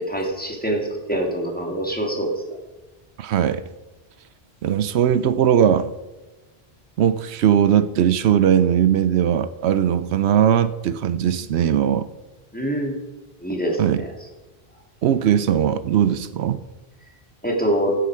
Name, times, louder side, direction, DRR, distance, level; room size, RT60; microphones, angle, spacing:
voice 1, 0.1-2.6 12.5-12.9 13.4-14.1 17.4-18.0, right 1 dB, 10° left, 0 dB, 2.3 m, -25 dB
voice 2, 3.2-3.6 4.6-5.9 7.0-12.1 13.8-14.0 15.0-16.6, right 9 dB, 85° right, 13 dB, 0.9 m, -19 dB
15.0 x 8.0 x 4.8 m, 1.1 s
omnidirectional pair, 1.1 m